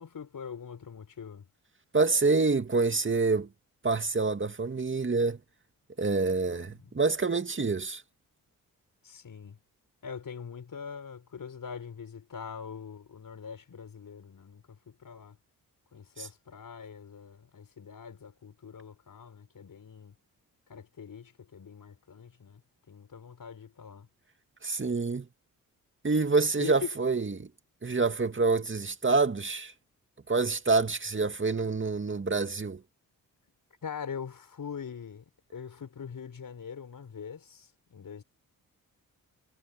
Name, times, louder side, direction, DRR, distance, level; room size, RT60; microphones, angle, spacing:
voice 1, 0.0-1.5 6.6-6.9 9.0-9.6 10.0-15.4 15.9-20.1 20.7-22.6 22.9-24.1 26.6-26.9 33.8-35.3 35.5-38.2, left 7 dB, 60° left, 5.2 m, -43 dB
voice 2, 1.9-3.5 3.8-5.4 6.0-8.0 16.2-16.3 24.6-25.3 26.0-27.5 27.8-29.7 30.3-32.8, right 4 dB, 30° right, 2.3 m, -27 dB
supercardioid pair, 55°, 37 cm